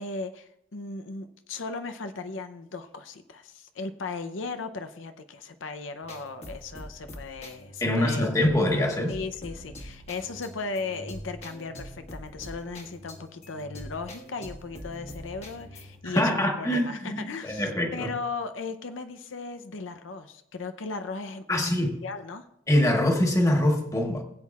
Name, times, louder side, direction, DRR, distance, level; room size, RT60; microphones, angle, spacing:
voice 1, 0.0-8.3 9.1-21.7 22.0-22.5, left 4 dB, 80° left, 0.7 m, -37 dB
sound 1, 6.0-16.0, equal, 35° left, 1.4 m, -44 dB
voice 2, 7.8-9.1 16.0-18.1 21.5-21.9 22.7-24.2, left 1 dB, 15° left, 1.4 m, -24 dB
20.5 x 8.3 x 2.4 m
head